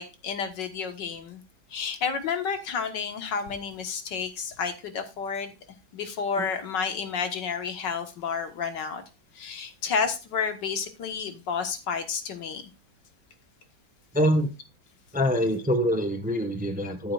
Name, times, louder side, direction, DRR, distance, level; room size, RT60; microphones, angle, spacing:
voice 1, 0.0-1.4 1.7-5.5 5.9-9.0 9.3-12.6, left 6 dB, 70° left, 1.9 m, -31 dB
voice 2, 14.1-14.5 15.1-17.1, equal, 5° right, 0.8 m, -25 dB
13.5 x 7.5 x 2.4 m
omnidirectional pair, 2.0 m